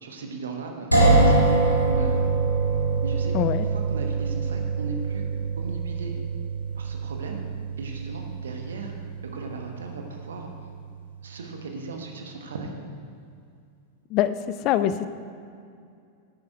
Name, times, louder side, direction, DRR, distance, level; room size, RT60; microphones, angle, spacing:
voice 1, 0.0-2.2 3.0-5.3 5.6-6.2 6.7-7.4 7.8-10.5 11.2-12.7, right 3 dB, 65° right, 3 dB, 1.3 m, -37 dB
sound 1, 0.9-10.7, right 3 dB, 90° right, 1.6 m, -24 dB
voice 2, 3.3-3.7 14.1-15.1, left 11 dB, 40° left, 13 dB, 0.4 m, -24 dB
9.5 x 9.0 x 4.6 m, 2.4 s
figure-of-eight pair, 90°, 0 cm